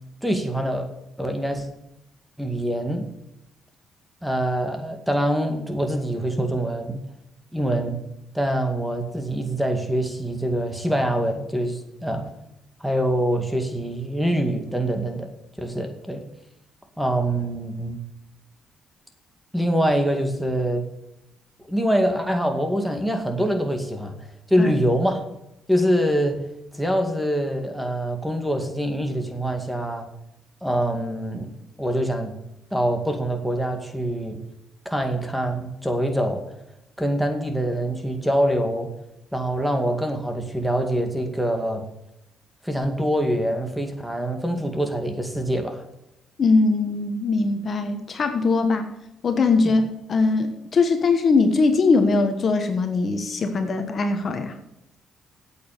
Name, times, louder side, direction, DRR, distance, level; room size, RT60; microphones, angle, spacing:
voice 1, 0.2-0.9 1.2-1.7 2.4-3.0 4.2-7.0 7.5-8.0 8.3-12.3 12.8-15.3 15.6-16.2 17.0-18.0 19.5-20.8 21.7-25.2 25.7-26.4 26.7-30.1 30.6-32.3 32.7-34.4 34.9-36.4 37.0-38.9 39.3-41.9 42.6-45.8 49.6-49.7, equal, ahead, 5 dB, 2.1 m, -24 dB
voice 2, 46.4-48.9 49.2-54.6, left 3 dB, 45° left, 7 dB, 1.3 m, -21 dB
8.6 x 8.4 x 6.7 m, 0.86 s
cardioid pair, 90°, 0 cm